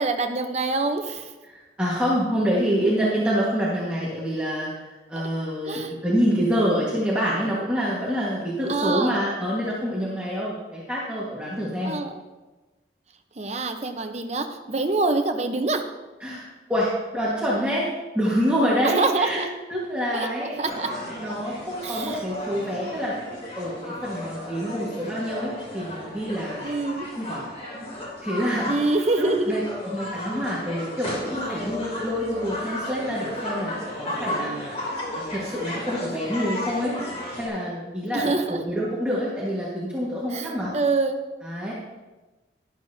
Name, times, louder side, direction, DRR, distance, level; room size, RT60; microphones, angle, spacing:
voice 1, 0.0-1.3 5.2-5.3 5.6-5.9 8.7-9.2 11.8-12.2 13.4-15.8 18.8-19.5 20.1-20.9 21.8-22.2 26.6-27.1 28.7-29.7 38.1-38.6 40.3-41.2, right 3 dB, 35° right, 6 dB, 0.8 m, -25 dB
voice 2, 1.5-11.9 16.2-17.9 18.1-19.4 19.7-20.6 21.2-23.1 23.5-26.7 27.1-27.5 28.2-28.7 29.2-34.7 35.1-36.9 37.4-40.7 41.4-41.7, equal, 5° right, -7 dB, 1.5 m, -26 dB
sound 1, 20.6-37.5, left 1 dB, 35° left, 2.9 m, -34 dB
12.0 x 11.5 x 2.7 m, 1.2 s
head